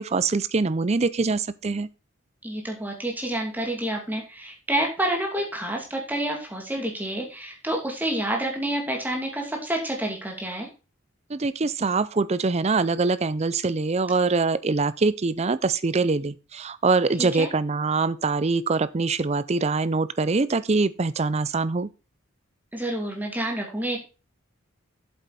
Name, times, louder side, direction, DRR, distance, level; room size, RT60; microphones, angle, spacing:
voice 1, 0.0-1.9 11.3-21.9, right 3 dB, 30° right, 0.5 m, -24 dB
voice 2, 2.4-10.7 17.2-17.5 22.7-24.0, right 1 dB, 10° right, 2.6 m, -28 dB
8.1 x 7.9 x 4.2 m
head